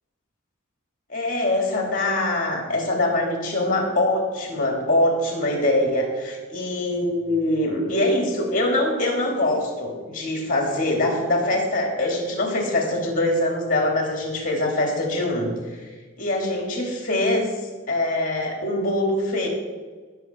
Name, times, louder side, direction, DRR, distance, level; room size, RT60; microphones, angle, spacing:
voice 1, 1.1-15.8 16.2-19.5, left 1 dB, 40° left, 0 dB, 3.0 m, -23 dB
18.0 x 7.3 x 4.7 m, 1.4 s
head